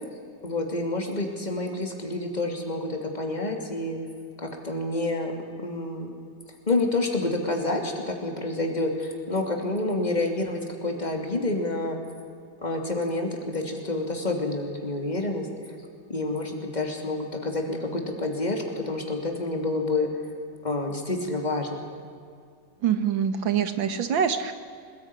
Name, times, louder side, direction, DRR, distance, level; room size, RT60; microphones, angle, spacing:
voice 1, 0.4-4.0 4.4-5.3 5.6-6.1 6.7-12.0 12.6-15.7 16.1-20.1 20.6-21.8, left 2 dB, 20° left, 2 dB, 3.0 m, -28 dB
voice 2, 22.8-24.5, right 8 dB, 75° right, 10 dB, 2.1 m, -25 dB
22.5 x 19.5 x 9.9 m, 2.3 s
omnidirectional pair, 2.1 m